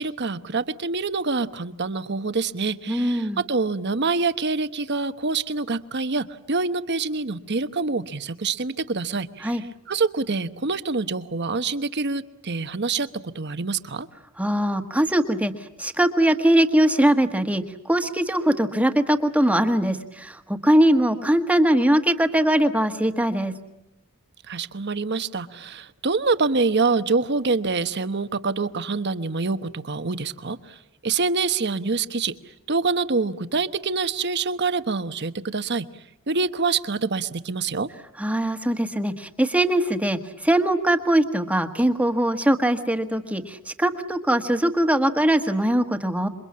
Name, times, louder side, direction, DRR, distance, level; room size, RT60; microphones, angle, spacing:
voice 1, 0.0-14.1 24.5-32.3 32.7-35.9 36.3-37.9, right 4 dB, 50° right, 12 dB, 1.1 m, -26 dB
voice 2, 2.9-3.4 9.4-9.6 14.4-15.5 15.8-23.5 38.2-46.3, right 1 dB, 5° right, 7 dB, 1.5 m, -21 dB
27.5 x 24.0 x 8.6 m, 0.85 s
head